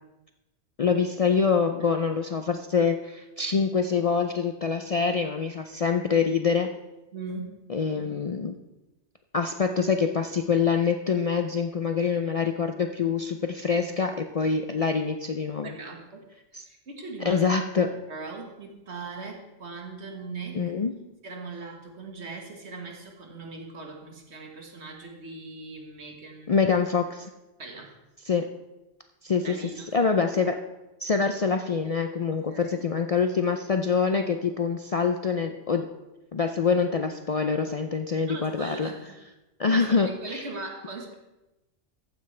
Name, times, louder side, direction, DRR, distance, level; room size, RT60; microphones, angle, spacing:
voice 1, 0.8-6.7 7.7-8.5 9.3-15.7 16.5-16.6 17.2-17.9 20.5-20.9 26.5-27.3 28.3-28.5 29.2-29.5 29.9-30.6 31.0-35.9 36.3-38.9 39.6-40.5, left 5 dB, 50° left, 6 dB, 0.4 m, -25 dB
voice 2, 7.1-7.6 13.7-13.9 15.6-16.3 16.6-17.5 17.8-20.7 21.2-26.6 27.6-27.9 29.4-29.9 32.3-32.8 38.3-39.2 39.7-41.1, right 3 dB, 70° right, 2 dB, 1.8 m, -40 dB
14.5 x 9.5 x 3.3 m, 1.0 s
omnidirectional pair, 1.2 m